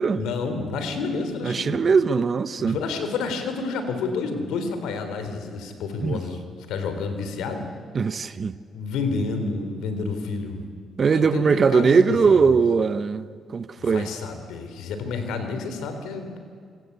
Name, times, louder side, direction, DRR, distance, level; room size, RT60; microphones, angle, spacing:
voice 1, 0.2-1.8 2.6-7.7 8.7-10.6 11.1-12.5 13.8-16.4, left 4 dB, 90° left, 3.6 m, -29 dB
voice 2, 1.4-2.8 6.0-6.2 7.9-8.6 11.0-13.3 13.5-14.1, right 5 dB, 45° right, 1.0 m, -20 dB
27.0 x 23.0 x 8.2 m
cardioid pair, 90°, 0 cm